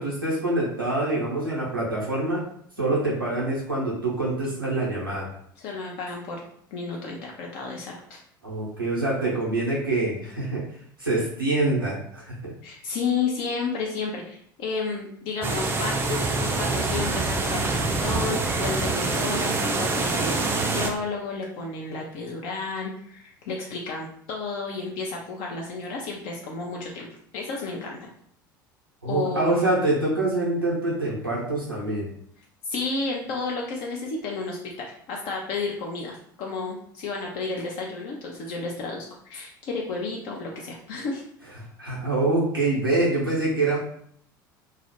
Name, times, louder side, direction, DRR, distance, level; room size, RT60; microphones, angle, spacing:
voice 1, 0.0-2.4 2.8-5.3 8.4-10.6 11.0-12.5 29.0-32.1 41.8-43.8, right 2 dB, 85° right, -5 dB, 0.6 m, -25 dB
voice 2, 5.6-6.4 6.7-8.2 12.6-28.1 29.0-29.7 32.6-41.2, left 4 dB, 50° left, -1 dB, 0.4 m, -32 dB
sound 1, 15.4-20.9, right 3 dB, 20° right, 0.4 m, -25 dB
2.3 x 2.0 x 2.8 m, 0.66 s
figure-of-eight pair, 70°, 11 cm